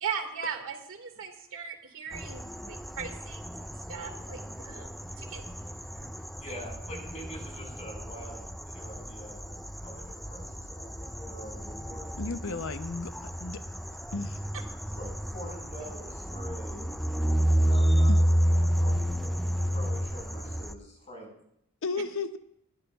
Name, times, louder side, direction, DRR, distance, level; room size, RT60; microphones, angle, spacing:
voice 1, 0.0-5.4, right 6 dB, 65° right, 5 dB, 2.0 m, -38 dB
sound 1, 2.1-20.7, equal, ahead, 0.4 m, -30 dB
voice 2, 6.4-12.2 14.9-16.9 17.6-19.4 19.7-21.3, equal, 30° left, 0 dB, 5.3 m, -45 dB
voice 3, 12.2-13.6 14.1-14.4 18.1-18.2 21.8-22.4, left 3 dB, 65° left, 10 dB, 0.8 m, -34 dB
21.0 x 13.0 x 2.4 m, 0.74 s
head